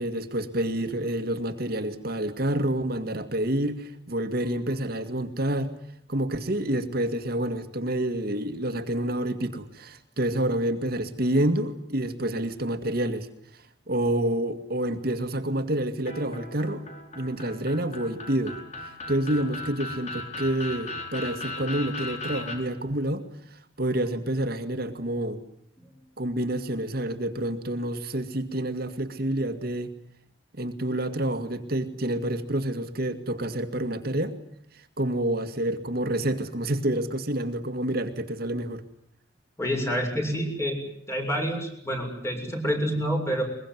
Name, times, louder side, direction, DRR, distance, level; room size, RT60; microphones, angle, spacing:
voice 1, 0.0-5.7 6.1-13.3 13.9-16.8 17.2-18.6 18.8-23.2 23.8-25.4 26.2-29.9 30.5-34.4 35.0-38.8, right 1 dB, 55° right, 8 dB, 2.2 m, -28 dB
sound 1, 16.1-22.6, left 2 dB, 40° left, 4.9 m, -37 dB
voice 2, 39.6-40.8 41.1-43.4, equal, 15° left, 3 dB, 6.9 m, -27 dB
23.0 x 22.5 x 9.4 m, 0.69 s
head